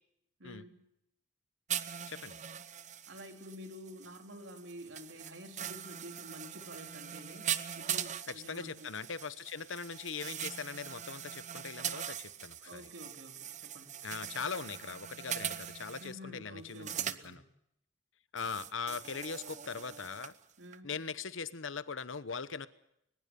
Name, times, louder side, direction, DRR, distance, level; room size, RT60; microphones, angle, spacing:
voice 1, 0.4-0.8 3.1-8.9 12.6-14.0 16.0-17.5 20.6-20.9, equal, 70° right, 4 dB, 3.6 m, -49 dB
sound 1, 1.7-16.1 16.7-17.3 18.4-20.4 20.7-20.8, right 9 dB, 40° right, 0.9 m, -41 dB
voice 2, 8.5-12.9 14.0-17.4 18.3-20.3 20.8-22.7, left 5 dB, 90° left, 14 dB, 1.0 m, -41 dB
21.5 x 20.5 x 6.9 m, 0.79 s
head